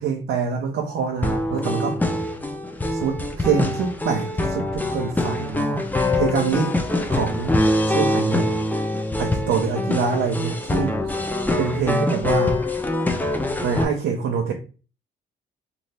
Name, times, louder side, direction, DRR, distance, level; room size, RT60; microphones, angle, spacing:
voice 1, 0.0-2.0 2.9-5.8 6.1-6.7 7.1-7.6 7.9-8.5 9.2-11.2 11.6-12.6 13.6-14.5, right 6 dB, 75° right, 0.6 m, -25 dB
sound 1, 1.2-13.9, left 2 dB, 10° left, 0.4 m, -24 dB
2.7 x 2.4 x 3.2 m
cardioid pair, 90°, 20 cm